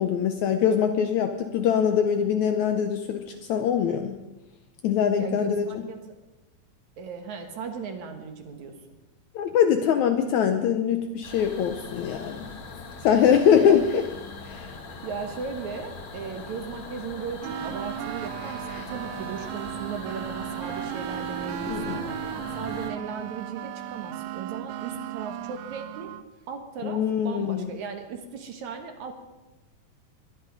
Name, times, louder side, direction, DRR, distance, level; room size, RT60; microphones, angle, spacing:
voice 1, 0.0-4.2 4.8-5.7 9.4-12.5 13.0-14.0 14.4-14.7 21.7-22.0 26.8-27.7, left 8 dB, 75° left, 7 dB, 1.8 m, -23 dB
voice 2, 5.2-6.1 7.0-8.8 13.7-13.8 15.0-22.2 22.6-26.1 26.5-29.2, right 6 dB, 65° right, 6 dB, 2.4 m, -37 dB
sound 1, 11.2-22.9, left 4 dB, 45° left, 1.8 m, -41 dB
sound 2, 17.4-26.3, right 12 dB, 90° right, 2.4 m, -35 dB
22.0 x 11.0 x 5.3 m, 1.0 s
omnidirectional pair, 4.1 m